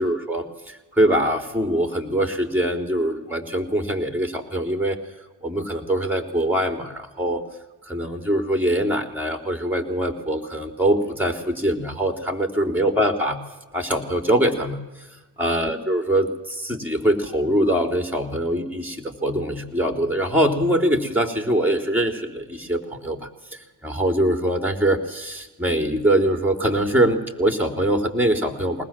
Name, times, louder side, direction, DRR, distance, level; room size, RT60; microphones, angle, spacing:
voice 1, 0.0-5.0 5.4-7.4 7.9-13.4 13.7-15.1 15.4-28.8, right 1 dB, 5° right, 7 dB, 3.7 m, -23 dB
21.0 x 19.5 x 7.7 m, 1.1 s
hypercardioid pair, 45°, 48 cm